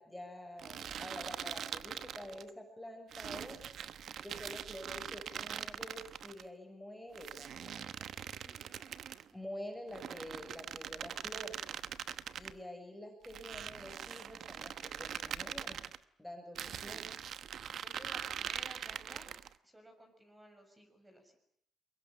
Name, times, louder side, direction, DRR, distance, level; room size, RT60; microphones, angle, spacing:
voice 1, 0.0-3.6 4.2-8.1 9.3-11.6 12.4-15.8 16.2-17.1, left 1 dB, 5° left, 3 dB, 6.4 m, -48 dB
sound 1, 0.6-2.5 3.1-6.4 7.2-9.3 9.9-12.6 13.2-16.0 16.6-19.5, right 9 dB, 65° right, 1.0 m, -42 dB
voice 2, 8.4-8.8 17.7-19.3 19.6-21.4, right 1 dB, 15° right, 4 dB, 6.8 m, -56 dB
24.0 x 21.5 x 10.0 m, 0.72 s
cardioid pair, 90°, 0 cm